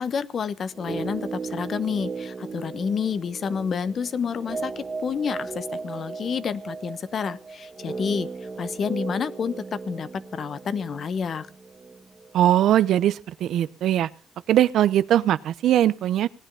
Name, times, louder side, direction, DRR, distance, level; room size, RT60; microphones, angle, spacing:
voice 1, 0.0-8.3 8.6-11.5, left 6 dB, 55° left, 15 dB, 1.1 m, -29 dB
sound 1, 0.7-12.9 13.1-13.2, right 4 dB, 35° right, 1.6 m, -36 dB
voice 2, 12.3-14.1 14.5-16.3, right 12 dB, 75° right, 16 dB, 0.7 m, -20 dB
18.5 x 9.9 x 5.5 m, 0.35 s
cardioid pair, 90°, 0 cm